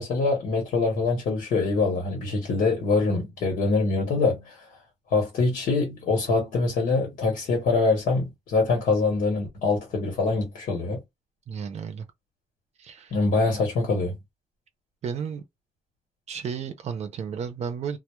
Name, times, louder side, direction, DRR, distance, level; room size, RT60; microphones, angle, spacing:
voice 1, 0.0-4.6 5.1-11.0 13.1-14.2, left 3 dB, 85° left, 0.9 m, -24 dB
voice 2, 11.5-12.1 12.8-13.1 15.0-15.4 16.3-18.0, right 6 dB, 55° right, 0.5 m, -33 dB
2.2 x 2.0 x 2.9 m
wide cardioid pair, 150°, 13 cm